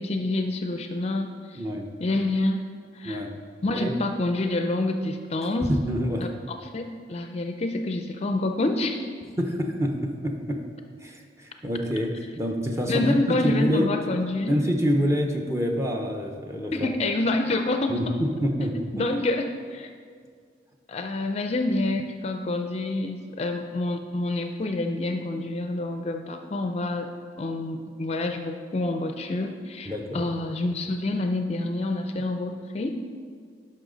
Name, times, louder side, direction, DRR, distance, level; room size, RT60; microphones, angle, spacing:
voice 1, 0.0-1.6 2.0-2.6 2.9-3.2 3.6-5.7 6.2-9.1 12.9-14.6 16.7-18.0 18.9-19.9 20.9-27.1 27.4-33.0, left 2 dB, 35° left, 5 dB, 0.4 m, -27 dB
voice 2, 1.5-1.9 3.0-3.3 3.7-3.9 5.6-6.2 9.4-10.6 11.0-13.9 14.5-16.9 17.9-19.1 29.8-30.2, equal, 15° right, 2 dB, 0.8 m, -27 dB
11.0 x 5.6 x 3.9 m, 2.1 s
head